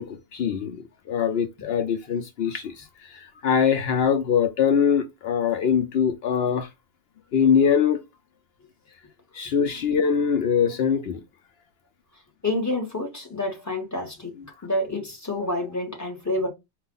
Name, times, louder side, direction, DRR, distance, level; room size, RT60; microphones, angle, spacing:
voice 1, 0.0-6.7 7.3-8.0 9.3-11.2, left 7 dB, 65° left, 0.8 m, -23 dB
voice 2, 12.4-14.4 14.6-16.5, left 1 dB, 15° left, 1.4 m, -28 dB
4.5 x 2.4 x 3.8 m
omnidirectional pair, 1.1 m